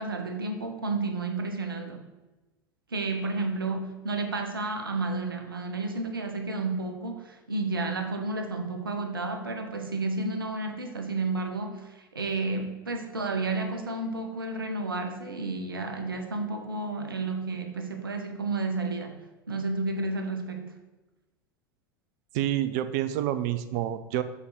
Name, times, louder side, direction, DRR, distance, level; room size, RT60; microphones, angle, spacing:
voice 1, 0.0-2.1 2.9-20.8, right 3 dB, 80° right, 5 dB, 0.9 m, -31 dB
voice 2, 22.3-24.2, right 12 dB, 50° right, 12 dB, 0.5 m, -28 dB
7.1 x 4.1 x 5.0 m, 1.1 s
figure-of-eight pair, 80°, 12 cm